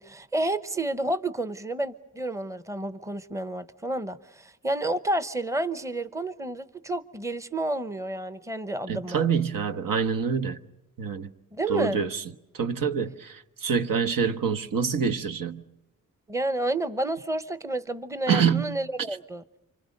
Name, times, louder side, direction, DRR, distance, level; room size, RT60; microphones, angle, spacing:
voice 1, 0.0-9.3 11.5-12.0 16.3-19.4, right 1 dB, 10° right, 0.9 m, -30 dB
voice 2, 8.9-10.6 11.0-11.3 11.7-12.2 12.5-15.6 18.3-18.6, right 6 dB, 75° right, 1.3 m, -26 dB
29.0 x 25.5 x 6.6 m
wide cardioid pair, 115°, 33 cm